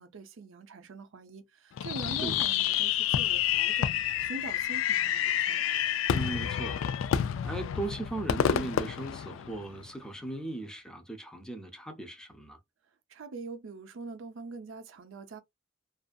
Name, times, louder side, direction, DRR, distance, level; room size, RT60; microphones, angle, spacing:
voice 1, 0.0-5.6 13.1-15.4, right 3 dB, 75° right, 0.5 m, -43 dB
Fireworks, 1.8-9.9, left 10 dB, 75° left, 0.3 m, -29 dB
voice 2, 6.1-12.6, right 2 dB, 5° left, 0.5 m, -38 dB
2.6 x 2.4 x 2.2 m
head